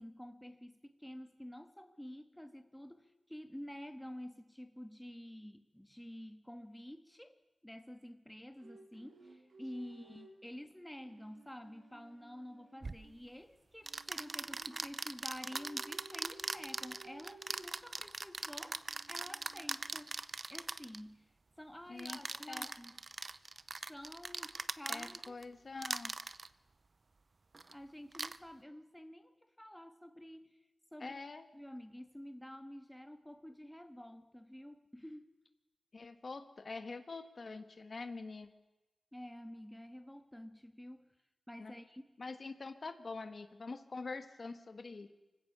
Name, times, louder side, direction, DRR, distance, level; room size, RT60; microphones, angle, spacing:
voice 1, 0.0-20.1 20.5-21.3 21.6-23.1 23.9-25.4 27.7-30.6 30.9-31.2 31.5-35.3 39.1-41.1 41.5-42.0, equal, 5° left, 7 dB, 1.5 m, -50 dB
sound 1, 8.6-10.4 10.9-13.2 13.8-15.0 15.5-17.7 18.4-20.1, right 3 dB, 80° right, 3.7 m, -58 dB
sound 2, 12.8-13.0 13.9-21.0 22.0-25.4 25.8-26.5 27.5-27.7 28.1-28.4, right 3 dB, 45° right, 0.6 m, -41 dB
voice 2, 21.9-22.2 22.5-22.7 24.9-26.2 31.0-31.5 35.9-38.5 41.6-41.7 42.2-45.1, left 3 dB, 55° left, 8 dB, 1.3 m, -45 dB
24.5 x 16.5 x 6.8 m, 1.1 s
wide cardioid pair, 75°, 0 cm